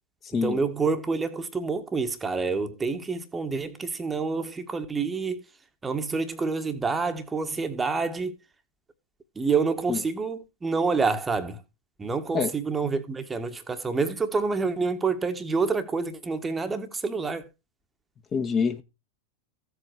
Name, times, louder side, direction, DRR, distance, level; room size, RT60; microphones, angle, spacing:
voice 1, 0.3-5.4 5.8-8.4 9.3-11.6 12.0-17.4, right 4 dB, 15° right, 1.5 m, -28 dB
voice 2, 18.3-18.8, left 5 dB, 25° left, 1.6 m, -25 dB
15.0 x 8.0 x 4.5 m
figure-of-eight pair, 90°, 0 cm